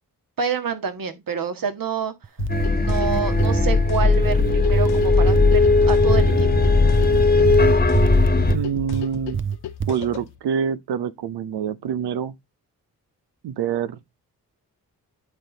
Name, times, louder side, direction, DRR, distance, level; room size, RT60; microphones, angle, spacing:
voice 1, 0.4-2.1 2.7-6.7, right 5 dB, 60° right, 1.8 m, -27 dB
sound 1, 2.2-3.7 4.2-5.6 6.1-6.5 6.9-9.1 9.3-10.0, right 7 dB, 30° right, 0.8 m, -27 dB
sound 2, 2.4-10.4, left 9 dB, 80° left, 0.9 m, -35 dB
sound 3, 2.5-8.6, left 3 dB, 25° left, 1.3 m, -17 dB
voice 2, 8.5-9.5 9.9-12.3 13.4-14.0, right 7 dB, 80° right, 0.8 m, -26 dB
9.9 x 4.5 x 4.0 m
supercardioid pair, 40°, 39 cm